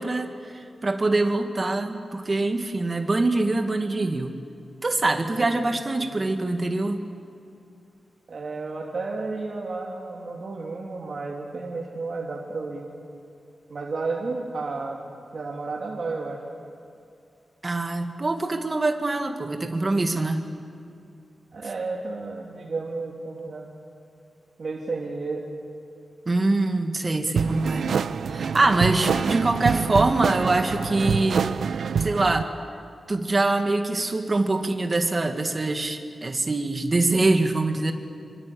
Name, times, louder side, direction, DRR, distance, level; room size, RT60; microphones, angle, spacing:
voice 1, 0.0-4.3 4.8-7.0 17.6-20.4 26.3-27.9 28.3-31.5 32.0-32.5 33.1-37.9, right 2 dB, 30° right, 5 dB, 1.9 m, -24 dB
voice 2, 5.4-5.7 6.0-6.2 8.3-12.9 13.7-15.0 15.3-16.4 21.5-23.7 24.6-25.4, right 3 dB, 50° right, -3 dB, 2.9 m, -32 dB
sound 1, 27.4-32.4, right 6 dB, 85° right, 0.6 m, -26 dB
27.0 x 24.5 x 8.6 m, 2.4 s
wide cardioid pair, 145°, 0 cm